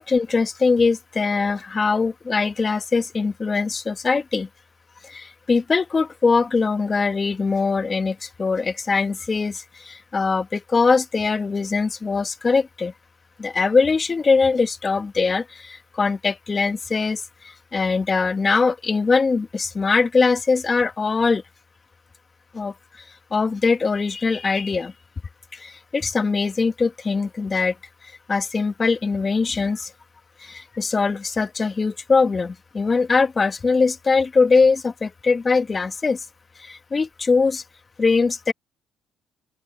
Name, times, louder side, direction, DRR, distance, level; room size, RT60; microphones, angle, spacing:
voice 1, 0.0-4.5 5.0-12.9 13.4-21.4 22.5-22.7 23.3-24.9 25.5-27.7 28.0-29.9 30.4-36.3 36.6-37.6 38.0-38.5, left 4 dB, 35° left, 1.6 m, -22 dB
open air
supercardioid pair, 70°, 0 cm